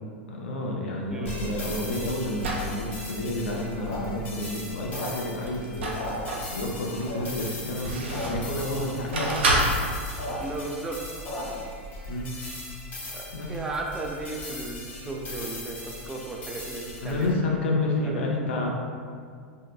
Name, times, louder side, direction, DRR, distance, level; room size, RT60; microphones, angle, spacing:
voice 1, 0.3-5.9 6.5-9.3 9.8-9.9 12.1-12.3 13.3-13.5 17.0-18.7, left 2 dB, 75° left, -1 dB, 0.4 m, -30 dB
sound 1, 1.0-2.7 5.4-6.5 7.1-8.5 9.1-9.8, right 2 dB, 75° right, 0.5 m, -28 dB
voice 2, 1.1-1.4 10.4-11.0 11.5-11.6 13.1-17.5 18.0-18.2, right 3 dB, 10° right, 0 dB, 0.3 m, -35 dB
sound 2, 1.3-17.3, left 1 dB, 30° left, 0.6 m, -40 dB
sound 3, 3.8-5.5 5.8-6.7 7.0-7.5 7.9-8.3 8.5-8.6 8.8-9.3 9.7-11.7, left 1 dB, 55° left, 0.9 m, -36 dB
2.7 x 2.1 x 2.3 m, 2.2 s
hypercardioid pair, 100°, 6 cm